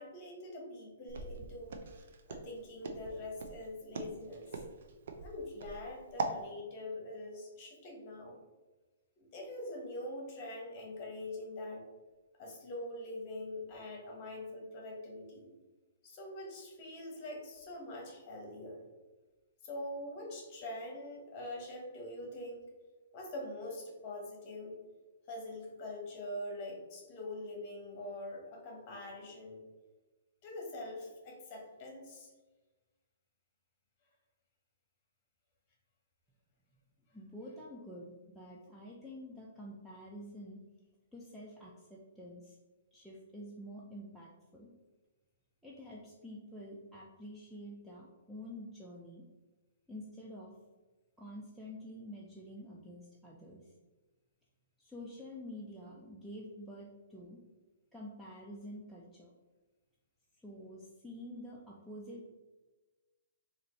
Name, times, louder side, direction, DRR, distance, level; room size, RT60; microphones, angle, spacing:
voice 1, 0.0-4.5 5.2-8.4 9.2-11.8 12.4-15.5 16.0-18.8 19.6-22.7 23.1-24.8 25.3-29.6 30.4-32.3, left 1 dB, 35° left, 0 dB, 1.2 m, -44 dB
Walk footsteps, 1.1-6.4, right 4 dB, 65° right, 0.5 m, -41 dB
voice 2, 37.1-40.6 41.1-42.6 42.9-44.7 45.6-49.2 49.9-50.6 51.2-53.6 54.8-57.4 57.9-59.3 60.4-62.3, equal, ahead, -5 dB, 0.4 m, -48 dB
4.0 x 2.6 x 3.1 m, 1.2 s
hypercardioid pair, 145°, 0 cm